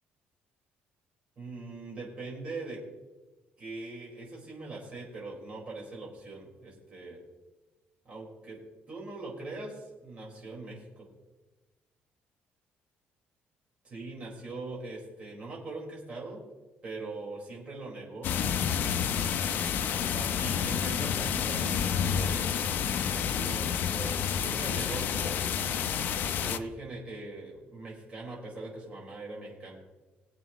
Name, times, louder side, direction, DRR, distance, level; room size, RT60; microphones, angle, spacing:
voice 1, 1.4-2.8 3.6-7.2 8.0-8.6 8.9-11.1 13.8-16.4 16.8-18.3 19.6-25.4 26.3-29.8, right 2 dB, 30° right, -4 dB, 4.4 m, -41 dB
sound 1, 18.2-26.6, left 8 dB, 55° left, 0.7 m, -29 dB
22.0 x 8.2 x 3.0 m, 1.2 s
cardioid pair, 160°, 4 cm